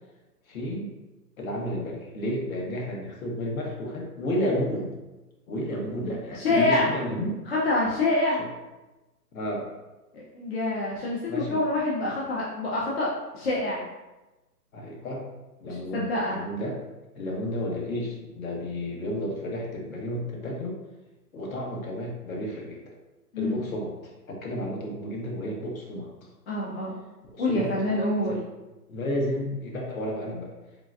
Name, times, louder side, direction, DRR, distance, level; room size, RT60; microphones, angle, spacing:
voice 1, 0.5-0.9 1.4-4.9 5.5-7.3 9.3-9.7 11.3-11.6 14.7-15.3 15.6-16.8 17.2-20.8 21.3-22.8 23.4-23.9 24.3-26.3 27.2-27.7 28.2-28.4 28.9-30.5, left 1 dB, 55° left, -1 dB, 0.9 m, -31 dB
voice 2, 6.4-6.9 7.5-8.4 10.1-13.1 13.3-13.8 15.6-16.4 23.3-23.6 26.5-27.0 27.4-28.4, left 2 dB, 40° left, -6 dB, 0.5 m, -26 dB
3.8 x 2.4 x 2.3 m, 1.1 s
hypercardioid pair, 145°, 49 cm